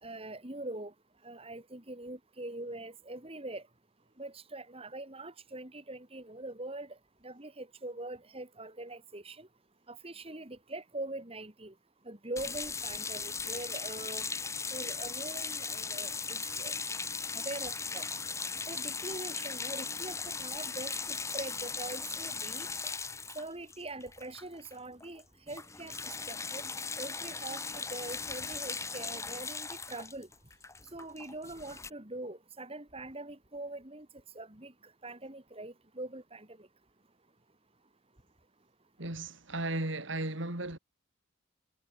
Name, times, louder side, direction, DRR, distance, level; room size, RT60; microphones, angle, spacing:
voice 1, 0.0-0.9 1.2-3.6 4.2-7.0 7.2-9.5 9.9-11.7 12.0-14.3 14.7-16.7 17.3-18.1 18.7-22.7 23.3-25.9 26.3-26.6 27.0-30.3 30.9-34.1 34.3-34.7 35.0-36.7, right 2 dB, 30° right, 3.2 m, -43 dB
sound 1, 12.4-24.7 25.0-25.2 25.5-31.9, left 4 dB, 15° left, 1.1 m, -38 dB
voice 2, 39.0-40.8, right 2 dB, 65° right, 3.5 m, -35 dB
head